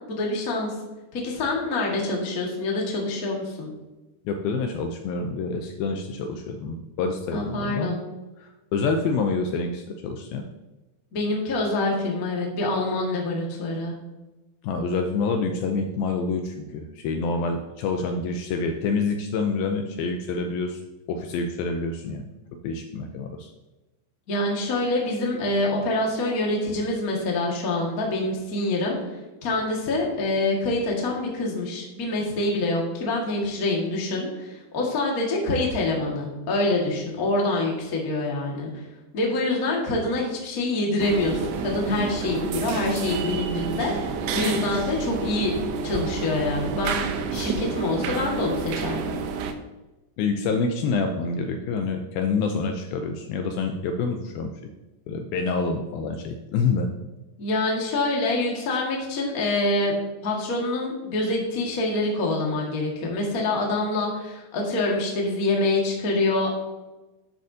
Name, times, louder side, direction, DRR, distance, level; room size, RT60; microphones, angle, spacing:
voice 1, 0.1-0.7 1.1-3.7 7.3-8.0 11.1-13.9 24.3-29.0 29.4-38.7 39.1-45.5 45.8-47.0 47.3-49.2 57.4-59.9 60.2-66.5, left 2 dB, 40° left, -2 dB, 1.2 m, -26 dB
voice 2, 4.3-8.0 8.4-10.4 14.6-20.8 21.1-22.2 22.6-23.5 50.2-54.5 55.1-56.9, left 4 dB, 80° left, 4 dB, 2.2 m, -27 dB
sound 1, 41.0-49.5, right 5 dB, 80° right, 2.5 m, -29 dB
10.5 x 7.7 x 2.8 m, 1.1 s
omnidirectional pair, 4.7 m